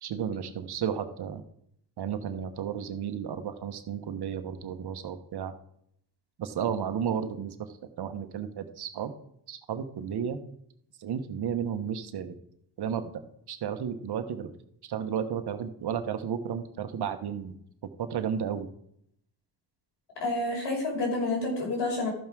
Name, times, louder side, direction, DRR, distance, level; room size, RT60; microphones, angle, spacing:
voice 1, 0.0-1.4 2.0-5.5 6.4-7.5 8.0-9.1 9.5-10.4 11.0-12.3 12.8-13.1 13.5-14.5 14.8-17.6 18.0-18.7, right 8 dB, 70° right, 8 dB, 1.3 m, -33 dB
voice 2, 20.2-22.1, left 2 dB, 85° left, -1 dB, 5.0 m, -29 dB
13.5 x 5.5 x 6.1 m, 0.71 s
cardioid pair, 95°, 41 cm